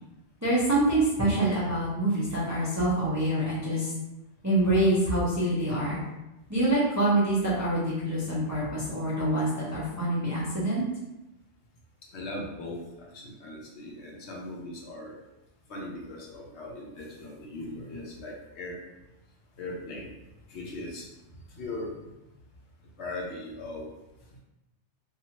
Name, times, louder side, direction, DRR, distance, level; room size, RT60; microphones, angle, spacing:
voice 1, 0.4-3.9 4.4-6.0 6.5-10.8, right 1 dB, 20° right, -8 dB, 0.5 m, -26 dB
voice 2, 12.1-15.2 15.7-18.8 19.6-20.1 20.5-21.1 21.5-21.9 23.0-23.9, left 2 dB, 70° left, -2 dB, 0.9 m, -39 dB
2.8 x 2.4 x 2.9 m, 0.95 s
omnidirectional pair, 1.2 m